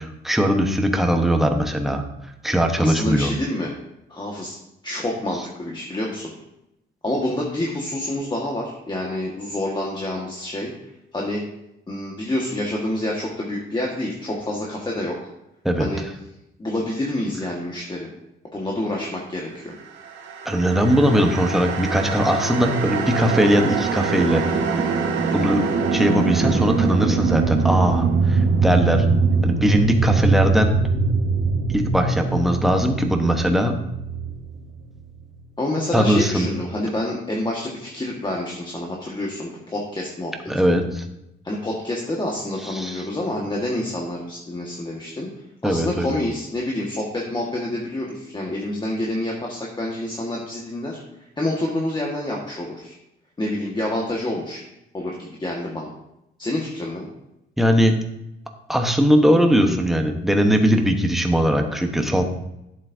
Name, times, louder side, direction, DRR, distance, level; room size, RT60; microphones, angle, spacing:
voice 1, 0.0-2.0 2.4-3.3 15.6-15.9 20.4-24.5 25.3-25.6 25.9-29.1 29.4-30.8 31.7-33.8 35.9-36.5 40.5-41.0 42.6-43.0 45.6-46.2 57.6-57.9 58.7-62.2, equal, ahead, 4 dB, 1.1 m, -20 dB
voice 2, 2.8-3.7 4.1-4.6 4.8-6.3 7.0-10.7 11.1-11.4 11.9-15.2 15.8-16.0 16.6-18.1 18.5-19.7 35.6-40.3 41.4-45.3 45.6-53.0 53.4-54.6 54.9-55.9 56.4-57.1, left 1 dB, 20° left, -2 dB, 1.6 m, -27 dB
sound 1, 20.0-35.2, right 4 dB, 80° right, 1.2 m, -23 dB
11.5 x 7.5 x 2.7 m, 0.87 s
cardioid pair, 90°, 20 cm